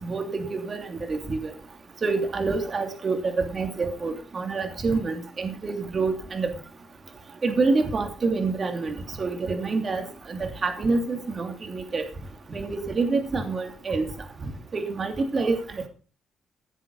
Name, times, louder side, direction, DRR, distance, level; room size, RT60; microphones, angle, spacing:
voice 1, 0.0-1.5 2.0-6.5 7.4-12.0 12.5-14.1 14.7-15.9, right 3 dB, 40° right, 6 dB, 2.8 m, -27 dB
16.0 x 7.7 x 5.4 m, 0.37 s
cardioid pair, 90°, 0 cm